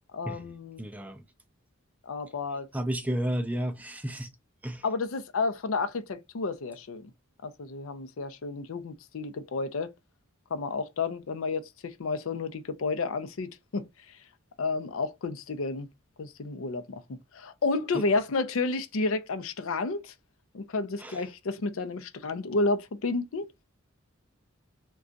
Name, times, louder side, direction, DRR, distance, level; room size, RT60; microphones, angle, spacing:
voice 1, 0.1-0.8 2.0-2.7 4.8-7.1 7.4-9.9 10.5-13.9 14.6-15.9 16.2-20.1 20.5-23.5, left 3 dB, 70° left, 0.5 m, -31 dB
voice 2, 0.8-1.2 2.7-4.3 4.6-4.8 17.9-18.0 21.0-21.2, right 1 dB, 5° right, 0.3 m, -32 dB
2.4 x 2.3 x 3.8 m
head